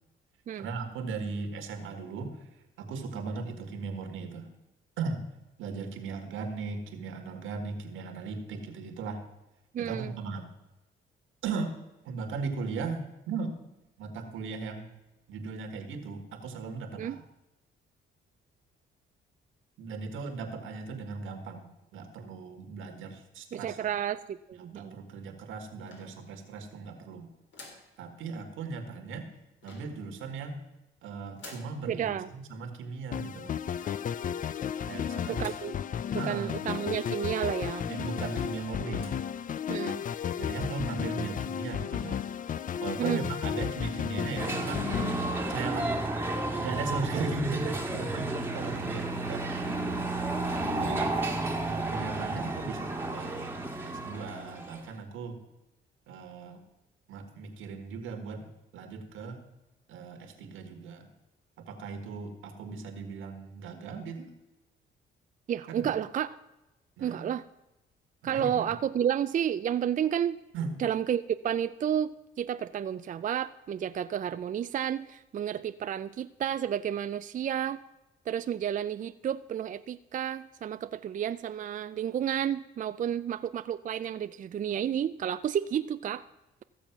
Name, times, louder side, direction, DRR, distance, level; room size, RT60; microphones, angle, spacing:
voice 1, 0.6-2.5 2.8-4.5 5.0-5.2 5.6-9.2 9.8-10.5 11.4-11.8 12.1-13.6 14.0-14.9 15.3-17.2 19.8-21.7 21.9-23.9 24.6-27.3 28.0-29.3 29.6-30.6 31.0-33.6 34.9-35.5 36.2-36.6 37.9-39.2 40.4-42.2 42.8-44.9 45.5-45.9 46.6-49.8 50.8-51.3 51.7-53.5 53.8-55.4 56.1-56.6 57.1-59.4 59.9-61.1 61.6-64.3 65.7-66.0 67.0-67.3 68.2-68.7 70.5-70.7, right 4 dB, 85° right, 6 dB, 1.8 m, -37 dB
voice 2, 9.7-10.1 17.0-17.2 23.5-25.0 31.9-32.3 35.3-35.7 36.2-37.9 39.7-40.0 43.0-43.3 65.5-66.3 67.0-67.4 68.2-70.4 70.8-72.1 72.4-77.8 78.3-86.2, right 9 dB, 40° right, 11 dB, 0.4 m, -31 dB
sound 1, 25.9-26.6 27.5-27.9 29.6-30.1 31.4-31.8 33.8-34.2 35.4-35.8 36.3-36.4 36.6-36.7 37.4-37.5 37.9-38.0 38.3-38.6 38.9-39.3, left 2 dB, 65° left, 3.5 m, -50 dB
sound 2, 33.1-46.0, left 8 dB, 40° left, 0.4 m, -34 dB
sound 3, 44.4-54.9, right 2 dB, 10° right, 1.6 m, -32 dB
14.5 x 7.1 x 6.0 m, 0.97 s
cardioid pair, 90°, 20 cm